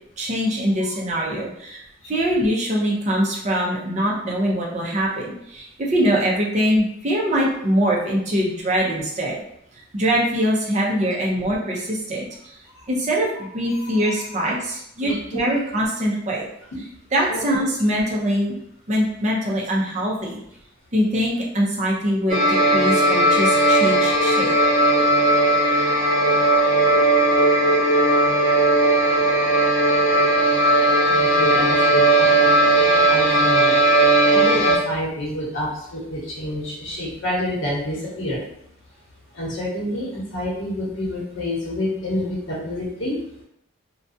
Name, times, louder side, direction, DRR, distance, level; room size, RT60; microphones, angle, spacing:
voice 1, 0.2-1.8 2.1-9.3 9.9-12.3 12.9-16.5 17.1-18.5 18.9-20.4 20.9-24.5, equal, 35° right, -3 dB, 0.5 m, -23 dB
voice 2, 13.7-14.4 15.0-15.5 16.7-16.8 17.3-17.4 31.1-33.7 34.3-38.4 39.3-43.2, left 1 dB, 75° left, -5 dB, 0.9 m, -28 dB
sound 1, 22.3-34.8, right 1 dB, 20° left, 0.8 m, -17 dB
2.4 x 2.2 x 2.6 m, 0.74 s
head